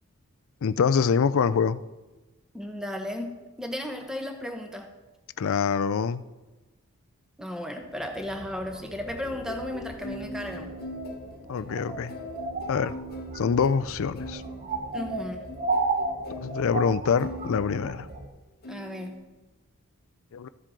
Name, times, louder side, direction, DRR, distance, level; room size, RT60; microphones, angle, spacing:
voice 1, 0.6-1.8 5.4-6.2 11.5-12.1 12.7-12.9 13.4-14.4 16.4-18.1 20.3-20.5, left 6 dB, 60° left, 15 dB, 0.4 m, -25 dB
voice 2, 2.5-4.9 7.4-10.7 14.9-15.4 18.7-19.1, left 1 dB, 5° right, 4 dB, 1.0 m, -35 dB
sound 1, 7.8-18.3, right 3 dB, 35° right, 1.0 m, -35 dB
sound 2, 9.2-18.3 18.6-19.1, left 1 dB, 45° left, 0.9 m, -41 dB
14.5 x 7.4 x 3.8 m, 1.2 s
head